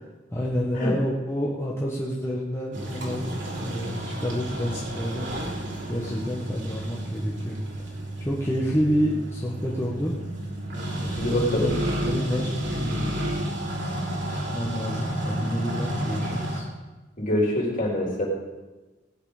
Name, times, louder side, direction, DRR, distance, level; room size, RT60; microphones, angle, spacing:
voice 1, 0.3-5.3 5.9-7.6 8.2-10.2 11.3-13.4 14.3-16.7, equal, 15° left, -5 dB, 1.4 m, -29 dB
sound 1, 2.7-16.6, right 1 dB, 70° right, 3.2 m, -31 dB
voice 2, 11.2-11.7 17.2-18.3, left 1 dB, 45° left, -3 dB, 4.0 m, -25 dB
17.5 x 9.7 x 5.0 m, 1.2 s
head